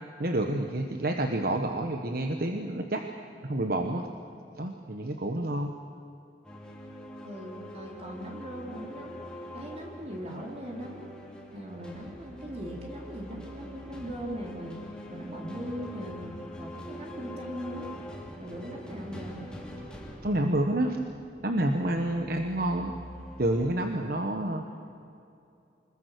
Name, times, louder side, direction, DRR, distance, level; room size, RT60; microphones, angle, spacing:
voice 1, 0.2-3.0 3.4-4.1 4.6-5.7 20.2-21.0 21.4-22.9 23.4-24.6, right 1 dB, 55° right, 4 dB, 1.2 m, -28 dB
sound 1, 6.4-23.7, equal, 5° left, 2.8 m, -44 dB
voice 2, 7.2-11.2 11.5-17.9 18.4-19.4, equal, 35° right, -1 dB, 3.4 m, -40 dB
25.5 x 21.0 x 6.6 m, 2.6 s
head